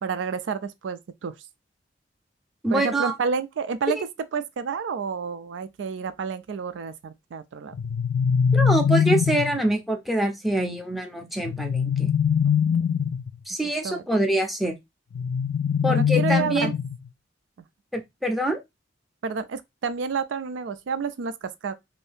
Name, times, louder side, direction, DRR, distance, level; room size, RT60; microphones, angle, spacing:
voice 1, 0.0-1.3 2.7-4.0 4.3-7.7 12.4-12.5 13.6-14.0 15.9-16.7 19.2-21.7, right 5 dB, 80° right, 0.4 m, -30 dB
voice 2, 2.6-3.2 3.9-4.0 8.5-12.1 13.5-14.8 15.8-16.7 17.9-18.6, right 1 dB, ahead, 0.5 m, -25 dB
sound 1, 7.7-9.6 11.4-13.3 15.1-17.1, left 7 dB, 70° left, 0.3 m, -23 dB
2.7 x 2.6 x 3.4 m
head